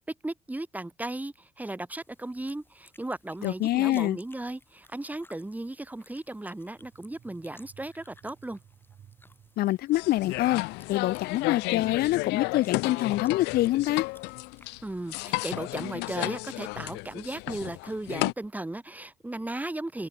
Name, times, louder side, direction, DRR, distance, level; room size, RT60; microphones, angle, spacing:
voice 1, 0.2-8.6 14.8-20.1, right 2 dB, 10° right, 1.8 m, -36 dB
sound 1, 2.0-15.6, left 2 dB, 10° left, 5.6 m, -60 dB
voice 2, 3.4-4.2 9.6-10.6 10.9-14.1, left 16 dB, 65° left, 0.6 m, -25 dB
sound 2, 6.8-9.6, right 9 dB, 50° right, 7.9 m, -56 dB
sound 3, 9.9-18.3, left 24 dB, 85° left, 1.2 m, -33 dB
open air
supercardioid pair, 95°, 17 cm